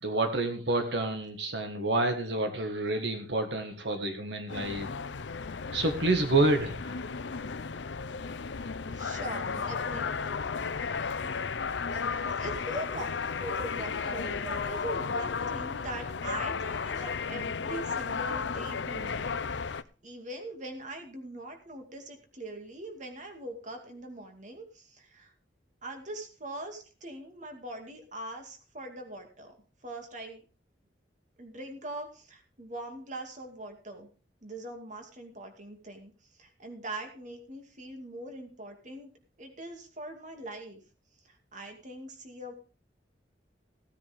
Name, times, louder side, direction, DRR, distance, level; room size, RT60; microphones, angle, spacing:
voice 1, 0.0-4.9 5.7-7.0, right 2 dB, 75° right, 5 dB, 1.7 m, -28 dB
sound 1, 4.5-19.8, left 5 dB, 85° left, 0.6 m, -34 dB
voice 2, 8.9-10.4 11.0-11.1 11.9-19.6 20.0-25.3 25.8-29.5 29.8-30.4 31.4-34.1 34.4-36.1 36.4-39.1 39.4-40.8 41.2-42.5, right 1 dB, 45° right, 4 dB, 2.4 m, -42 dB
16.5 x 9.8 x 3.6 m, 0.37 s
head